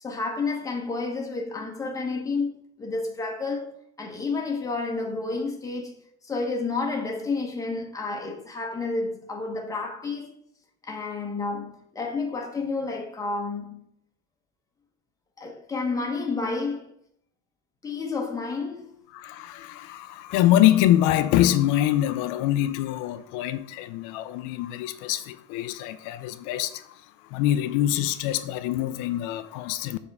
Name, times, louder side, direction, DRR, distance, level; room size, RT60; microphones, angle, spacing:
voice 1, 0.0-3.7 4.0-5.9 6.2-10.3 10.8-13.8 15.4-16.9 17.8-18.9, left 3 dB, 10° left, 1.1 m, -30 dB
voice 2, 19.1-30.0, left 13 dB, 85° left, 0.6 m, -24 dB
6.9 x 3.6 x 5.4 m
cardioid pair, 165°, 30 cm